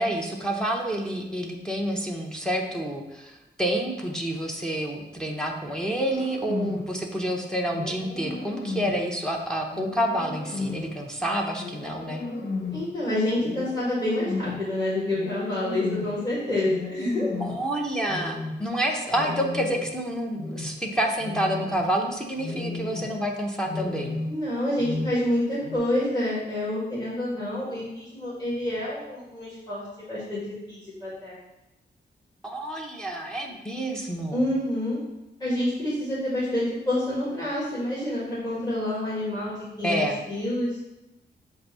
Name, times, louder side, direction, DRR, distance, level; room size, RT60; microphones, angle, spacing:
voice 1, 0.0-12.2 17.4-24.2 32.4-34.5 39.8-40.2, right 1 dB, 5° left, -1 dB, 0.8 m, -28 dB
sound 1, 6.1-6.9 7.7-9.1 9.7-11.0 11.5-12.9 13.4-14.7 15.1-16.2 16.6-17.7 18.1-18.7 19.1-20.0 20.4-20.8 21.2-22.0 22.4-23.2 23.6-24.5 24.8-25.3 25.6-25.8, left 3 dB, 75° left, 1.0 m, -34 dB
voice 2, 12.7-17.3 24.3-30.4 30.7-31.4 34.3-35.0 35.4-40.7, left 1 dB, 20° left, -9 dB, 2.1 m, -28 dB
7.4 x 2.7 x 5.5 m, 0.99 s
wide cardioid pair, 115°, 18 cm